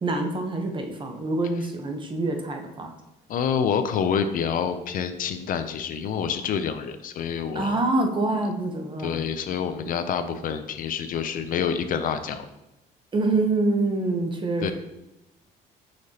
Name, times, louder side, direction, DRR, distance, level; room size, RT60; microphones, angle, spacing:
voice 1, 0.0-2.9 7.5-9.2 10.2-10.3 13.1-14.7, right 2 dB, 30° right, 4 dB, 0.9 m, -26 dB
voice 2, 3.3-7.8 9.0-12.5 14.6-14.7, left 7 dB, 55° left, 9 dB, 0.5 m, -27 dB
6.1 x 5.8 x 2.9 m, 0.94 s
cardioid pair, 110°, 17 cm